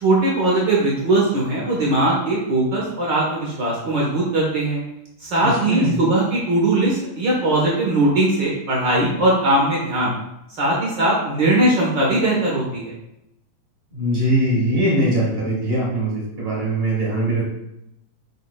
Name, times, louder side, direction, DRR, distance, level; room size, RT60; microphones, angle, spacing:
voice 1, 0.0-4.8 5.2-10.1 10.6-12.9, right 2 dB, 80° right, -4 dB, 1.0 m, -20 dB
voice 2, 5.4-6.0 13.9-17.5, right 1 dB, 60° right, -4 dB, 0.6 m, -21 dB
8.1 x 6.5 x 2.4 m, 0.84 s
omnidirectional pair, 4.4 m